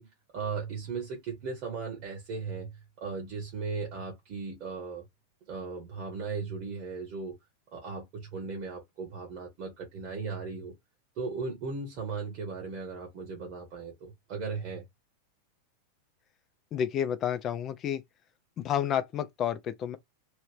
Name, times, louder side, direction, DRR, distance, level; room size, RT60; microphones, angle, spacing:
voice 1, 0.0-5.0 5.5-7.4 7.7-10.7 11.1-14.8, right 4 dB, 40° right, 1.3 m, -37 dB
voice 2, 16.7-18.0 18.6-20.0, left 9 dB, 30° left, 0.5 m, -30 dB
3.1 x 2.7 x 3.3 m
figure-of-eight pair, 90°, 0 cm